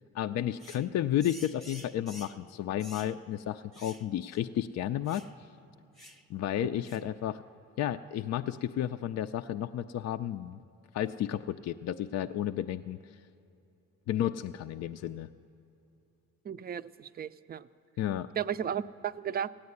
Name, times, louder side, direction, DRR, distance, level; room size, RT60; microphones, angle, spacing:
voice 1, 0.1-5.3 6.3-7.4 7.8-10.6 10.9-13.2 14.1-15.3 18.0-18.3, left 11 dB, 60° left, 8 dB, 0.4 m, -32 dB
sound 1, 0.6-0.9 1.2-2.4 2.8-3.2 3.7-4.1 4.3-4.4 5.1-5.3 6.0-6.2 6.8-7.1, equal, ahead, 0.8 m, -50 dB
voice 2, 16.4-17.7 18.4-19.5, right 9 dB, 30° right, 14 dB, 0.4 m, -34 dB
15.5 x 8.7 x 9.6 m, 2.8 s
cardioid pair, 90°, 30 cm